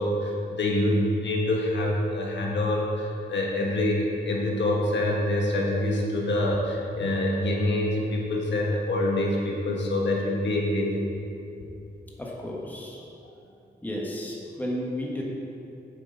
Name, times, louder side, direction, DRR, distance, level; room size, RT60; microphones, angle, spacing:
voice 1, 0.0-11.0, left 1 dB, 85° left, -2 dB, 1.5 m, -26 dB
voice 2, 12.2-13.0 13.8-15.2, left 1 dB, 10° left, -3 dB, 1.3 m, -33 dB
8.4 x 7.5 x 5.3 m, 2.7 s
wide cardioid pair, 150°, 18 cm